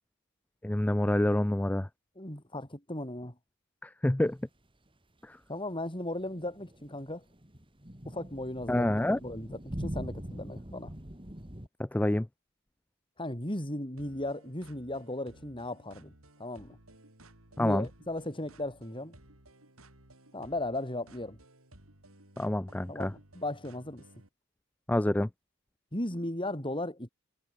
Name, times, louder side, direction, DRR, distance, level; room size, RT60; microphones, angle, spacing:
voice 1, 0.6-1.9 3.8-4.4 5.2-5.4 8.7-9.2 11.8-12.3 17.6-17.9 22.4-23.1 24.9-25.3, left 1 dB, 5° left, 0.3 m, -27 dB
voice 2, 2.2-3.4 5.5-7.2 8.1-8.9 9.1-10.9 13.2-16.1 16.4-16.8 17.6-19.2 20.3-21.4 22.9-24.1 25.9-27.1, left 1 dB, 25° left, 5.3 m, -36 dB
sound 1, 6.2-11.7, equal, 25° right, 2.7 m, -42 dB
sound 2, 14.0-24.3, right 1 dB, 70° right, 5.8 m, -57 dB
head